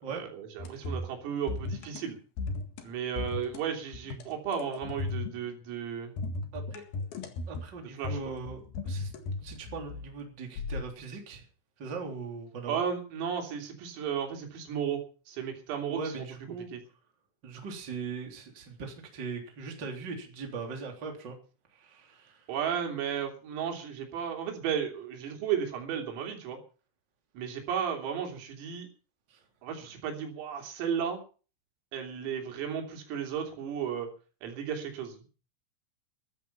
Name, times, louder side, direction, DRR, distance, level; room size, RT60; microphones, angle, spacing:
voice 1, 0.1-2.2 2.8-6.1 8.0-8.3 12.7-16.3 16.7-16.8 22.5-26.6 27.3-28.9 29.6-31.2 31.9-34.1 34.4-35.3, right 8 dB, 85° right, 3 dB, 5.9 m, -34 dB
sound 1, 0.6-1.2 1.5-2.0 2.4-2.8 3.2-3.6 3.9-5.5 6.2-7.7 8.0-10.1 10.6-10.8, left 3 dB, 55° left, 3.2 m, -36 dB
voice 2, 6.5-6.8 7.5-9.1 9.4-11.4 11.8-12.8 15.9-16.7 17.4-21.3 21.7-22.5 29.3-29.4, right 4 dB, 25° right, 2 dB, 3.1 m, -40 dB
14.5 x 13.0 x 5.7 m, 0.38 s
omnidirectional pair, 5.9 m